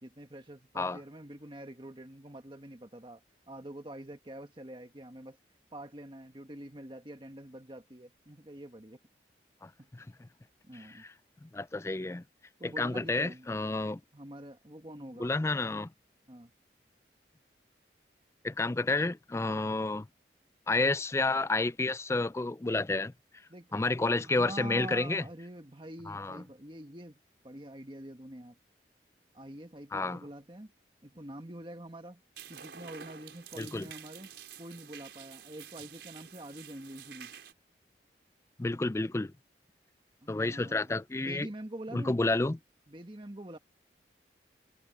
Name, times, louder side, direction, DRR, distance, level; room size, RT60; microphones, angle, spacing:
voice 1, 0.0-5.4 5.7-9.0 9.8-9.9 10.6-11.1 12.6-13.5 14.1-15.4 16.3-16.5 23.5-23.8 24.2-27.2 27.4-28.6 29.3-30.7 31.0-32.2 32.5-34.3 34.6-37.3 40.2-42.3 42.9-43.6, right 1 dB, 30° right, 1.7 m, -46 dB
voice 2, 9.6-10.0 11.4-12.2 12.6-14.0 15.2-15.9 18.4-20.1 20.7-23.1 23.7-25.2 26.1-26.4 29.9-30.2 33.6-33.9 38.6-39.3 40.3-41.5 41.9-42.6, left 2 dB, 15° left, 0.3 m, -30 dB
sound 1, 32.4-37.5, right 8 dB, 80° right, 4.9 m, -49 dB
head